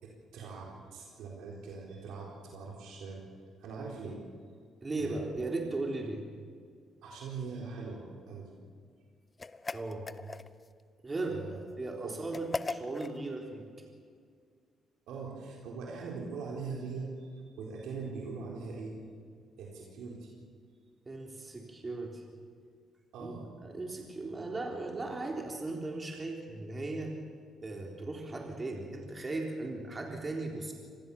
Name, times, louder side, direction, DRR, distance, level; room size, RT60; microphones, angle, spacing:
voice 1, 0.0-3.2 3.6-4.2 5.0-5.2 7.0-8.5 11.3-11.5 12.0-12.2 15.1-19.0 19.6-20.3 23.1-23.4, right 4 dB, 85° right, -2 dB, 4.2 m, -42 dB
voice 2, 4.8-6.2 9.7-10.1 11.0-11.4 11.8-13.6 21.1-22.2 23.2-23.3 23.6-27.1 27.6-30.7, right 2 dB, 25° right, 1 dB, 3.8 m, -37 dB
sound 1, 9.4-10.7 12.3-13.2, left 3 dB, 25° left, 0.9 m, -38 dB
26.0 x 19.5 x 7.2 m, 2.1 s
cardioid pair, 90°, 0 cm